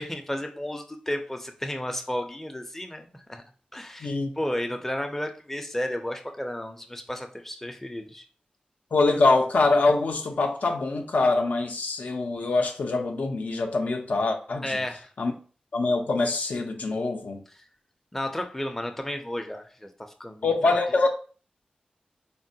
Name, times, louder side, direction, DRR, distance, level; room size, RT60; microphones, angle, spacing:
voice 1, 0.0-3.4 3.7-8.2 14.6-15.0 18.1-19.9 20.2-20.8, left 1 dB, 10° left, 0.4 m, -33 dB
voice 2, 8.9-14.8 15.2-15.3 15.7-17.4 20.4-21.1, left 3 dB, 70° left, 0.4 m, -24 dB
3.7 x 2.1 x 2.6 m
wide cardioid pair, 70°, 3 cm